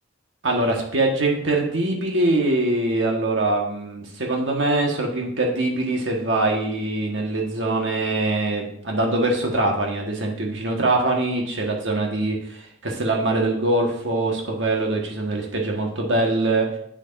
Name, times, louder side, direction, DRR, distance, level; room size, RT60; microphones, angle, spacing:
voice 1, 0.4-16.7, right 2 dB, 70° right, 0 dB, 1.5 m, -23 dB
8.2 x 6.9 x 2.6 m, 0.69 s
head